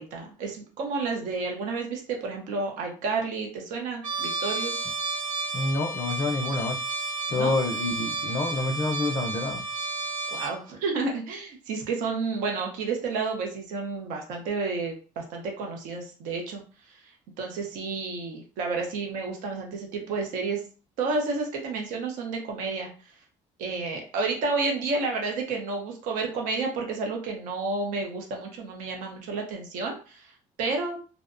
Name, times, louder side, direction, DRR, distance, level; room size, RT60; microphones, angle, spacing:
voice 1, 0.0-4.9 7.3-7.5 10.3-16.6 17.4-20.6 21.0-22.9 23.6-30.3 30.6-31.0, right 4 dB, 90° right, 0.6 m, -30 dB
Trumpet, 4.0-10.6, right 3 dB, 75° right, 1.0 m, -32 dB
voice 2, 5.5-6.8 7.3-9.6, left 2 dB, 30° left, 0.4 m, -27 dB
2.6 x 2.1 x 2.4 m
cardioid pair, 125°, 13 cm